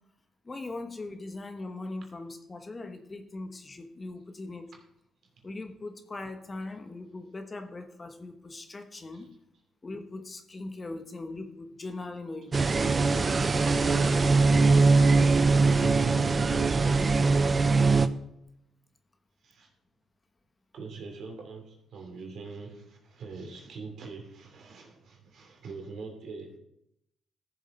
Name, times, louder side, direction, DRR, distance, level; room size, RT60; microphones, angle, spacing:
voice 1, 0.4-4.7 5.4-9.3 9.8-13.5, left 2 dB, 25° left, 7 dB, 1.1 m, -40 dB
sound 1, 12.5-18.1, right 3 dB, 30° right, 0.6 m, -22 dB
voice 2, 15.5-17.4 19.4-19.7 20.7-26.6, right 4 dB, 65° right, 1 dB, 3.0 m, -42 dB
13.5 x 7.2 x 4.3 m, 0.82 s
cardioid pair, 90°, 0 cm